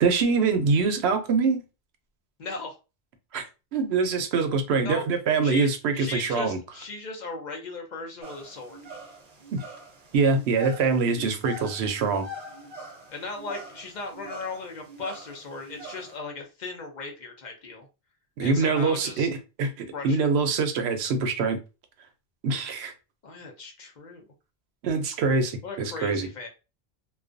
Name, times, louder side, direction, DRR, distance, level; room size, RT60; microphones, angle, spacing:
voice 1, 0.0-1.6 3.3-3.4 3.7-6.6 9.5-9.6 10.1-12.3 18.4-21.6 22.4-22.9 24.8-26.3, right 4 dB, 90° right, 7 dB, 0.8 m, -24 dB
voice 2, 2.4-2.8 4.8-5.0 5.4-8.8 13.1-17.9 18.4-19.3 19.9-20.2 23.2-24.2 25.6-26.5, left 3 dB, 55° left, 2 dB, 0.6 m, -37 dB
sound 1, 8.2-16.2, right 1 dB, 45° right, 0.6 m, -44 dB
2.3 x 2.2 x 2.4 m, 0.30 s
omnidirectional pair, 1.0 m